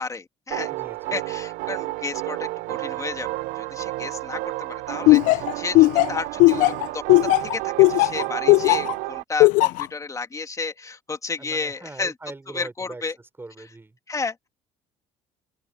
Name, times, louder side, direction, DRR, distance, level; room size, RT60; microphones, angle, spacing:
voice 1, 0.0-0.7 1.1-12.1 12.5-13.2 14.1-14.5, left 4 dB, 25° left, 2.8 m, -32 dB
sound 1, 0.5-9.2, right 21 dB, 75° right, 0.5 m, -31 dB
voice 2, 0.7-1.2 11.4-13.0 13.4-14.0, right 2 dB, 15° right, 6.0 m, -41 dB
Laughter, 5.1-8.9 9.4-9.8, left 22 dB, 70° left, 0.4 m, -15 dB
open air
supercardioid pair, 75°, 14 cm